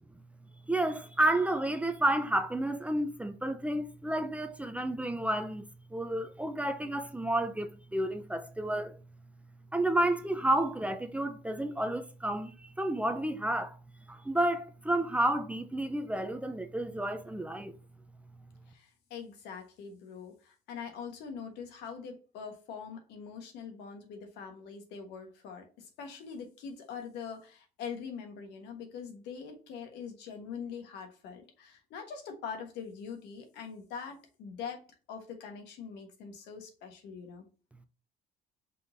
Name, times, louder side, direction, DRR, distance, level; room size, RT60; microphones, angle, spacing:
voice 1, 0.7-9.0 9.7-13.8 14.1-17.7, right 1 dB, 10° right, 0.5 m, -31 dB
voice 2, 18.7-34.8 35.1-37.5, left 6 dB, 85° left, 1.3 m, -43 dB
5.2 x 3.9 x 2.6 m
cardioid pair, 110°, 17 cm